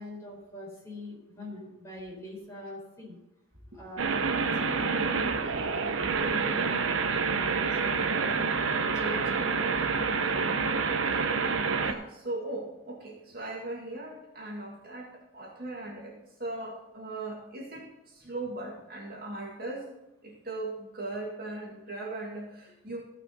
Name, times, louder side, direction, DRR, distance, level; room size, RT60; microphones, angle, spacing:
voice 1, 0.0-3.1 3.7-8.3 8.9-10.6, left 1 dB, 15° left, -4 dB, 4.1 m, -43 dB
sound 1, 4.0-11.9, right 5 dB, 75° right, 0.8 m, -28 dB
voice 2, 11.8-19.9 20.2-23.0, right 2 dB, 45° right, -2 dB, 2.3 m, -39 dB
15.5 x 5.6 x 5.4 m, 0.88 s
head